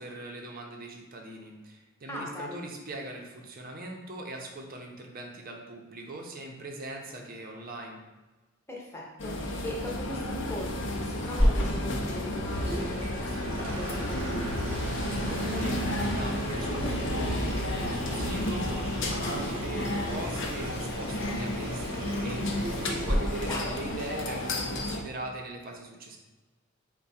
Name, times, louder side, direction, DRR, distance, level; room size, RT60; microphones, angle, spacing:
voice 1, 0.0-8.0 15.1-26.2, right 2 dB, 45° right, 1 dB, 0.6 m, -40 dB
voice 2, 2.1-2.6 8.7-14.5 23.4-23.8, left 1 dB, 15° left, -3 dB, 0.8 m, -39 dB
sound 1, 9.2-25.0, left 1 dB, 60° left, 0.5 m, -32 dB
Water tap faucet / Sink (filling or washing), 11.4-23.1, equal, 30° right, 1.0 m, -34 dB
sound 2, 13.0-17.5, right 6 dB, 80° right, 0.3 m, -42 dB
4.6 x 2.2 x 4.1 m, 1.2 s
head